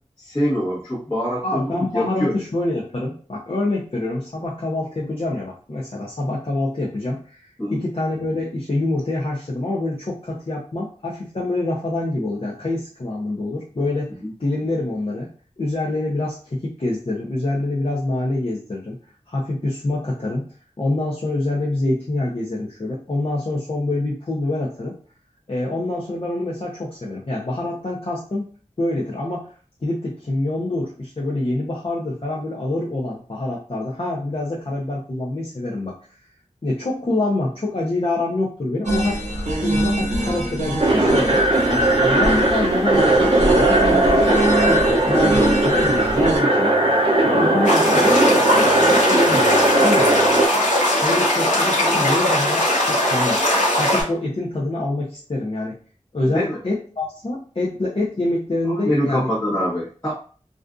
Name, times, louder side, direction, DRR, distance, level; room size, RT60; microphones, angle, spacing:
voice 1, 0.2-2.3 7.6-7.8 41.7-41.8 56.2-56.6 58.7-60.1, equal, 20° left, -11 dB, 1.0 m, -24 dB
voice 2, 1.4-14.1 14.4-15.3 15.6-19.0 19.3-20.5 20.8-24.9 25.5-28.5 28.8-29.5 29.8-35.9 36.6-39.2 39.5-41.4 41.9-46.8 47.3-48.2 48.5-49.5 49.8-50.1 51.0-55.8 56.1-59.3, left 2 dB, 50° left, -5 dB, 0.6 m, -26 dB
sound 1, 38.9-46.4, right 1 dB, 70° right, 0.9 m, -25 dB
sound 2, 40.8-50.5, right 1 dB, 45° right, 0.6 m, -18 dB
sound 3, 47.6-54.0, left 1 dB, 90° left, 0.9 m, -19 dB
2.4 x 2.3 x 2.4 m, 0.41 s
wide cardioid pair, 60°, 13 cm